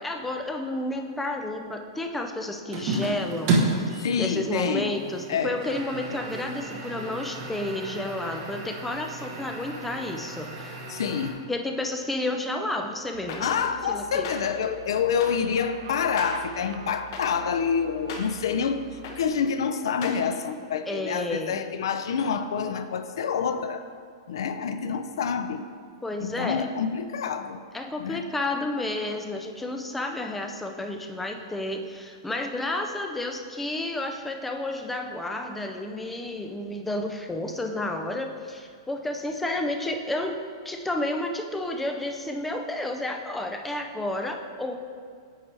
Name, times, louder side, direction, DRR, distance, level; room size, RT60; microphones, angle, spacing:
voice 1, 0.0-10.8 11.5-13.5 13.9-14.3 20.9-21.7 26.0-26.7 27.7-44.8, left 1 dB, 5° left, 4 dB, 0.4 m, -31 dB
sound 1, 2.7-11.3, right 2 dB, 40° right, 1.0 m, -32 dB
voice 2, 4.0-4.9 5.3-5.6 10.9-11.3 13.4-23.8 24.3-25.6 26.2-27.6 28.0-28.2, left 6 dB, 75° left, 10 dB, 0.5 m, -27 dB
sound 2, 13.1-19.3, right 10 dB, 65° right, 0.4 m, -46 dB
sound 3, 13.3-13.4 14.2-14.4 15.2-15.3 16.2-16.3 17.1-17.2 18.1-18.2 19.0-19.2 20.0-20.2, left 5 dB, 55° left, 1.0 m, -36 dB
8.7 x 4.7 x 3.3 m, 2.1 s
hypercardioid pair, 155°, 3 cm